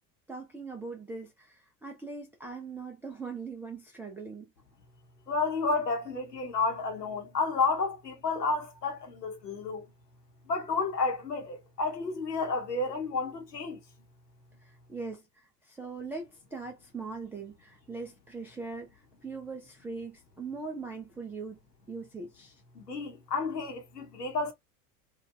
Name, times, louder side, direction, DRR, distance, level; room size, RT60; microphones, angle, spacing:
voice 1, 0.3-4.5 14.6-21.6 21.9-22.6, right 4 dB, 5° right, 0.3 m, -41 dB
voice 2, 5.3-9.9 10.5-13.8 22.7-24.5, left 4 dB, 80° left, 1.1 m, -31 dB
3.0 x 2.3 x 3.3 m
figure-of-eight pair, 70°, 47 cm